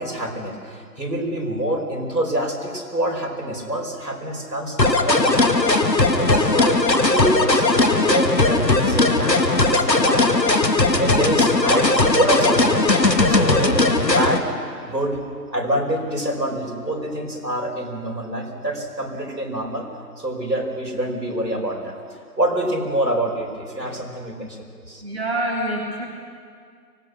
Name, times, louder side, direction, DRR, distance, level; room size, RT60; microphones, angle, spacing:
voice 1, 0.0-5.7 6.1-6.8 7.1-12.9 13.3-14.6 14.8-15.2 15.5-19.9 20.2-21.9 22.4-24.6 24.9-25.0, right 1 dB, 85° right, 0 dB, 5.2 m, -26 dB
sound 1, 4.8-14.4, left 2 dB, 80° left, 1.7 m, -18 dB
voice 2, 25.0-26.1, right 1 dB, 40° right, -2 dB, 2.3 m, -26 dB
24.5 x 19.0 x 6.5 m, 2.1 s
figure-of-eight pair, 175°, 50 cm